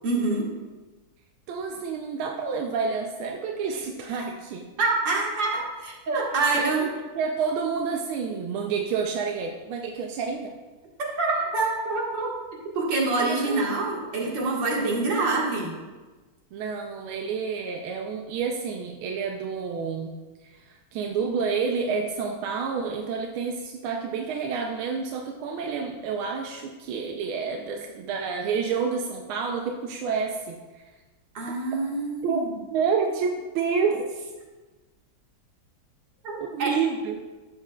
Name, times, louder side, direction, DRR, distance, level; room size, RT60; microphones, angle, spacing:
voice 1, 0.0-0.5 4.1-4.2 4.8-6.9 11.2-12.3 12.7-15.7 31.3-32.5 36.2-36.7, right 3 dB, 65° right, -3 dB, 2.3 m, -26 dB
voice 2, 1.5-4.7 6.5-6.9 7.2-10.6 13.2-13.8 16.5-20.2 20.4-30.8 32.2-34.3 36.4-37.2, right 5 dB, 90° right, 3 dB, 1.5 m, -29 dB
12.0 x 8.3 x 2.3 m, 1.3 s
omnidirectional pair, 2.2 m